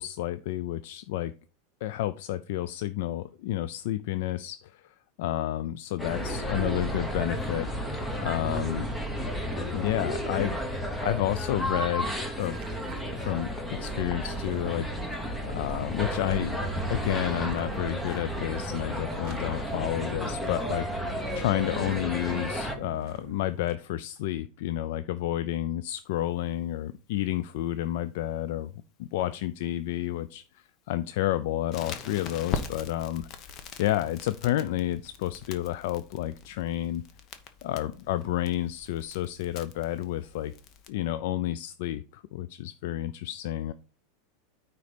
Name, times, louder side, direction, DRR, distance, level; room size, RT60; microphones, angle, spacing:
voice 1, 0.0-1.3 1.8-7.7 8.2-8.9 9.7-12.1 12.4-12.6 13.1-15.2 15.4-16.6 16.9-21.1 21.3-28.7 29.1-33.3 33.8-37.0 37.6-40.5 40.9-43.7, left 14 dB, 65° left, 13 dB, 0.4 m, -30 dB
sound 1, 6.0-22.7, equal, 5° left, 1.1 m, -32 dB
sound 2, 12.4-23.8, right 13 dB, 40° right, 0.5 m, -44 dB
Crackle, 31.7-40.9, left 6 dB, 35° left, 1.0 m, -41 dB
9.4 x 4.1 x 5.0 m, 0.37 s
supercardioid pair, 155°, 0 cm